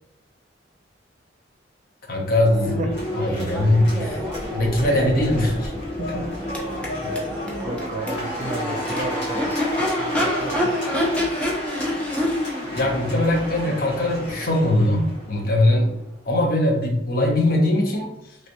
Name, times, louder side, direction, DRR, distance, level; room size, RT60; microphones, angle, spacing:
voice 1, 2.1-2.8 3.1-4.2 4.5-5.7 12.7-15.9 16.3-18.1, left 1 dB, 55° left, 0 dB, 0.7 m, -21 dB
Crowd / Race car auto racing / Accelerating revving vroom, 2.2-16.1, left 1 dB, 5° left, 0.6 m, -28 dB
sound 1, 2.9-15.3, left 1 dB, 75° left, 1.3 m, -35 dB
voice 2, 6.0-6.3 7.6-9.5 10.0-10.8, right 2 dB, 45° right, 2 dB, 0.3 m, -32 dB
3.2 x 2.8 x 2.6 m, 0.84 s
head